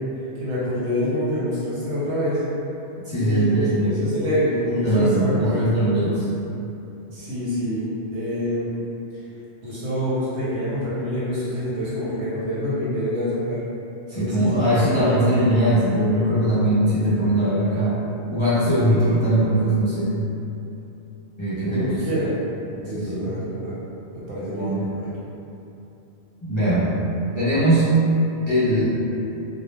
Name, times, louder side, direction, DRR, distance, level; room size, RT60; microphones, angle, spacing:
voice 1, 0.4-2.4 3.1-5.6 7.1-7.8 8.1-8.7 9.6-13.6 14.1-15.4 21.6-22.3 22.7-23.8 24.1-25.1, equal, 85° right, -10 dB, 0.9 m, -26 dB
voice 2, 3.0-3.9 4.7-6.3 14.1-18.0 18.3-20.1 21.4-21.9 22.9-23.3 24.5-24.9 26.4-26.9 27.4-28.0 28.5-28.8, right 1 dB, 40° left, -14 dB, 0.4 m, -20 dB
2.2 x 2.0 x 3.0 m, 2.9 s
omnidirectional pair, 1.1 m